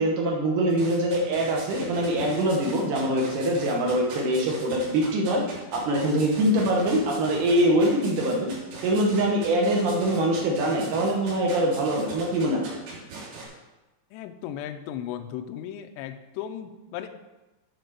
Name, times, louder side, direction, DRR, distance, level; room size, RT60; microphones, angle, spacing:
voice 1, 0.0-5.4 5.7-8.5 8.8-12.7, right 1 dB, 65° right, 0 dB, 2.1 m, -23 dB
sound 1, 0.7-13.5, right 3 dB, 85° right, 5.1 m, -40 dB
voice 2, 14.1-17.1, left 10 dB, 85° left, 6 dB, 2.5 m, -36 dB
9.4 x 4.3 x 6.6 m, 1.1 s
omnidirectional pair, 5.2 m